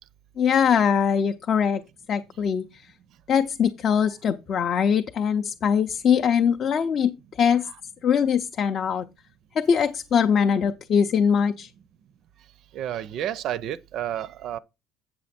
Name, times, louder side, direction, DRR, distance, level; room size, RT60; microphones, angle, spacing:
voice 1, 0.4-1.8 2.1-2.7 3.3-7.1 7.4-7.6 8.0-9.1 9.6-11.7, left 7 dB, 35° left, 0.5 m, -22 dB
voice 2, 12.7-14.6, right 11 dB, 50° right, 0.4 m, -30 dB
8.6 x 6.2 x 4.2 m
cardioid pair, 165°, 0 cm